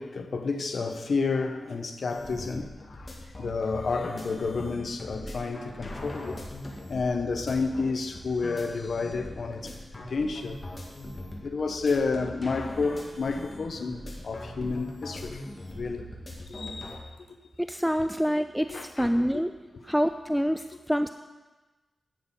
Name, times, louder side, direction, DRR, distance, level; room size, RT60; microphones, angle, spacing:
voice 1, 0.0-6.4 6.9-9.7 10.1-10.6 11.4-14.0 14.2-15.4 15.8-16.1 16.5-17.0 18.0-18.1 18.7-19.4, left 4 dB, 65° left, 7 dB, 0.9 m, -30 dB
sound 1, 2.1-17.0, left 1 dB, 30° left, 2.1 m, -41 dB
voice 2, 17.6-19.5 19.9-21.1, equal, ahead, 9 dB, 0.3 m, -26 dB
11.0 x 8.8 x 4.2 m, 1.2 s
wide cardioid pair, 125°, 0 cm